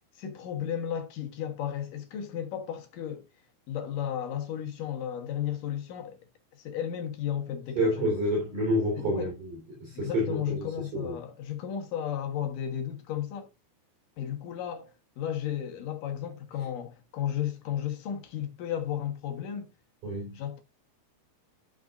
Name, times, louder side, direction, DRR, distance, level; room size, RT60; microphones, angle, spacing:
voice 1, 0.2-3.2 3.7-6.2 6.6-8.2 9.0-9.4 9.9-13.5 14.2-19.7 20.3-20.6, left 9 dB, 60° left, 2.6 m, -34 dB
voice 2, 7.8-9.5 9.8-10.7 10.9-11.1 20.0-20.4, equal, 50° right, 5.0 m, -28 dB
13.5 x 6.2 x 2.5 m
omnidirectional pair, 4.9 m